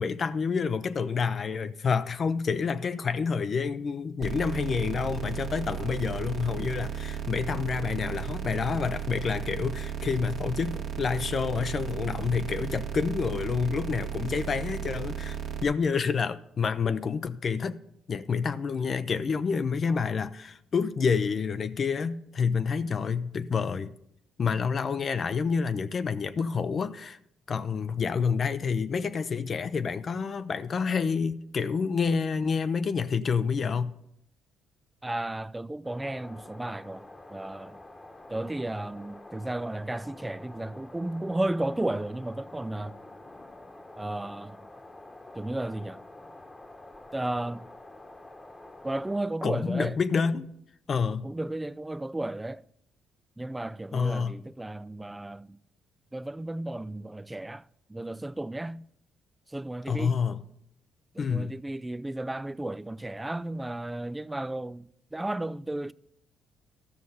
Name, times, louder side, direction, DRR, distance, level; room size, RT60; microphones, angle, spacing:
voice 1, 0.0-17.8 18.1-23.9 24.4-27.2 27.5-33.9 49.4-50.5 50.9-51.3 53.9-54.3 59.9-60.4 61.2-61.6, left 5 dB, 45° left, 0.5 m, -28 dB
sound 1, 4.2-15.6, right 8 dB, 60° right, 1.5 m, -35 dB
voice 2, 35.0-37.8 38.3-43.0 44.0-44.7 45.3-46.0 47.1-47.7 48.8-50.0 51.2-52.6 53.4-55.6 56.1-57.6 57.9-58.9 59.5-60.2 61.1-65.9, right 1 dB, 15° right, 0.3 m, -34 dB
sound 2, 35.8-49.2, left 2 dB, 20° left, 1.1 m, -48 dB
12.5 x 6.3 x 5.5 m
supercardioid pair, 70°, 0 cm